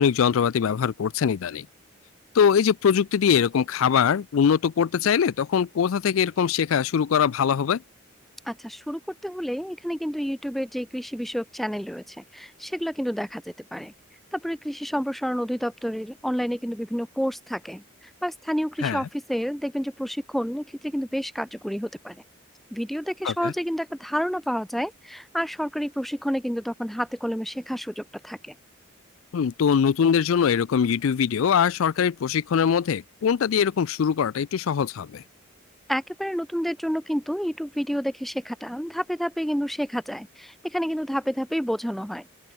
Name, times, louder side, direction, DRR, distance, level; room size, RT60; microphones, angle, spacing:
voice 1, 0.0-1.7 2.3-7.8 18.8-19.0 23.2-23.5 29.3-35.2, left 7 dB, 75° left, 0.4 m, -22 dB
voice 2, 8.5-13.9 14.3-17.8 18.2-22.2 22.7-28.5 35.9-42.2, equal, ahead, 0.8 m, -29 dB
open air
head